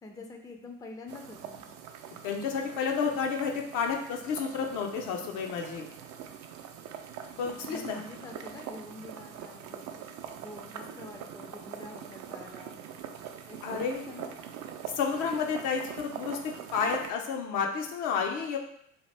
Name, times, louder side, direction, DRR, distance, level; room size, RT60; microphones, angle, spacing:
voice 1, 0.0-1.7 7.4-12.8 13.5-14.3, left 2 dB, 10° left, 3 dB, 0.4 m, -47 dB
sound 1, 1.1-17.1, right 8 dB, 60° right, 0.4 m, -43 dB
voice 2, 2.2-5.9 7.4-8.0 13.6-14.0 14.9-18.6, left 6 dB, 70° left, 2 dB, 0.6 m, -31 dB
2.8 x 2.1 x 3.2 m, 0.71 s
supercardioid pair, 75°, 33 cm